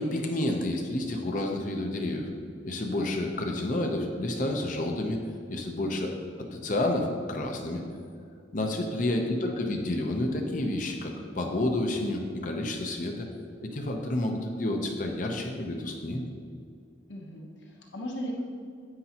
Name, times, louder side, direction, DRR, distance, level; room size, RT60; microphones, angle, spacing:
voice 1, 0.0-2.3 2.6-5.2 5.5-6.1 6.5-7.8 8.5-13.3 13.6-16.2, left 1 dB, 45° left, 3 dB, 0.7 m, -30 dB
voice 2, 17.1-18.4, equal, 70° left, -1 dB, 1.1 m, -37 dB
9.7 x 9.0 x 2.9 m, 2.3 s
head